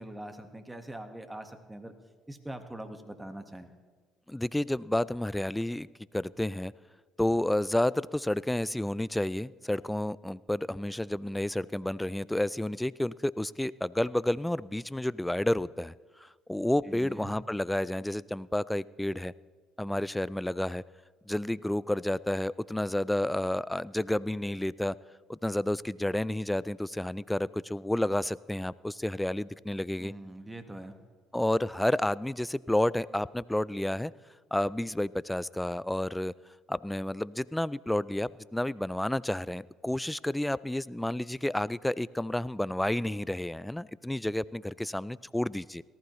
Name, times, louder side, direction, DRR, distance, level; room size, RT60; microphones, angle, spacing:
voice 1, 0.0-1.9 2.3-3.7 16.8-17.3 30.0-31.0, right 1 dB, 10° right, 7 dB, 1.6 m, -43 dB
voice 2, 4.3-5.9 6.1-6.7 7.2-15.9 16.2-19.3 19.8-20.8 21.3-25.0 25.3-30.1 31.3-34.1 34.5-36.3 36.7-45.8, left 1 dB, 5° left, 20 dB, 0.4 m, -30 dB
18.5 x 14.5 x 3.2 m, 1.5 s
supercardioid pair, 70°, 0 cm